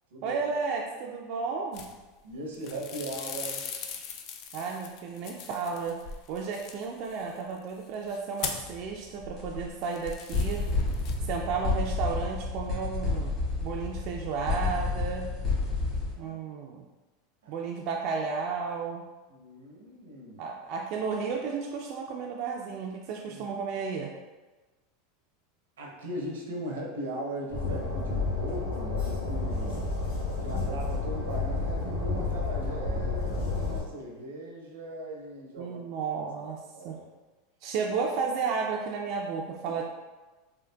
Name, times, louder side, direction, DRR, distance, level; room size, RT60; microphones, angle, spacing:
voice 1, 0.2-1.9 4.5-6.0 6.3-10.6 11.2-13.3 13.6-15.3 16.2-16.8 17.5-19.1 20.4-24.1 35.6-36.6 36.8-37.0 37.6-39.8, right 5 dB, 55° right, 0 dB, 0.3 m, -33 dB
sound 1, 1.7-2.3 2.5-8.8 9.2-11.4 11.7-12.0, left 6 dB, 55° left, 0.4 m, -40 dB
voice 2, 2.2-3.7 16.1-16.4 17.4-17.5 19.3-20.4 23.3-23.5 25.8-29.8 30.4-35.8 36.2-36.3 36.7-37.1 39.6-39.8, right 1 dB, 90° right, -1 dB, 0.7 m, -39 dB
sound 2, 8.6-8.9 9.4-9.5 9.8-9.9 10.3-16.1, left 3 dB, 40° left, 1.4 m, -30 dB
Train, 27.5-33.8, left 3 dB, 90° left, 1.0 m, -30 dB
3.7 x 2.4 x 2.2 m, 1.2 s
hypercardioid pair, 110°, 0 cm